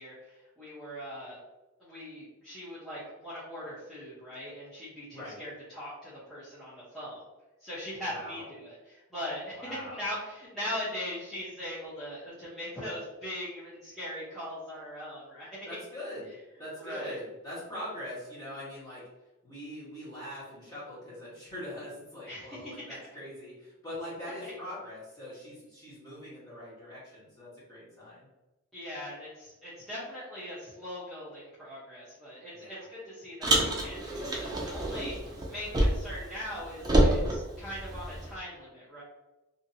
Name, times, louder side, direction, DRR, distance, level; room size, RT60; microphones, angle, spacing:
voice 1, 0.0-1.4 1.8-7.2 7.6-15.5 16.8-17.2 22.3-22.6 22.9-23.0 24.4-24.6 28.7-39.0, left 1 dB, ahead, -14 dB, 0.8 m, -40 dB
voice 2, 8.1-8.5 9.5-10.1 15.6-16.3 16.6-19.0 19.4-28.3 32.5-32.9, left 1 dB, 15° left, -9 dB, 1.3 m, -42 dB
Car, 33.4-36.2 36.5-38.3, right 1 dB, 20° right, 0.4 m, -27 dB
2.7 x 2.7 x 2.7 m, 1.1 s
head